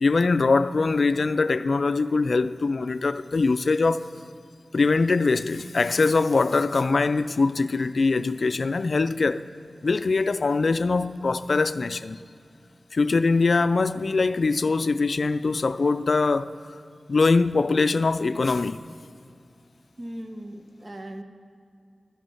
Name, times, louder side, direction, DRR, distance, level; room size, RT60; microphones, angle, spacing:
voice 1, 0.0-4.1 4.7-9.4 9.8-12.2 12.9-16.5 17.1-18.8, left 3 dB, 70° left, 0.3 m, -22 dB
voice 2, 20.0-21.2, right 1 dB, 45° right, 1.0 m, -38 dB
11.0 x 9.9 x 5.7 m
cardioid pair, 40°, 0 cm